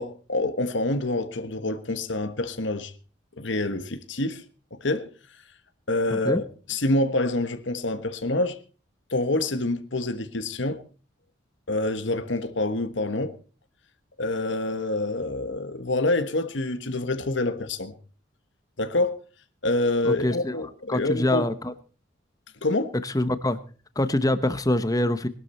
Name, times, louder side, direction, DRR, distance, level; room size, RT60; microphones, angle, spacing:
voice 1, 0.0-2.9 3.4-4.4 4.7-5.1 5.9-6.4 6.7-8.6 9.1-10.8 11.7-13.3 14.2-17.9 18.8-19.1 19.6-21.4 22.6-22.9, left 2 dB, 65° left, 1.3 m, -26 dB
voice 2, 6.1-6.4 20.0-20.6 20.9-21.7 23.0-23.6 24.0-25.3, left 1 dB, 20° left, 1.0 m, -25 dB
21.0 x 12.5 x 4.3 m
head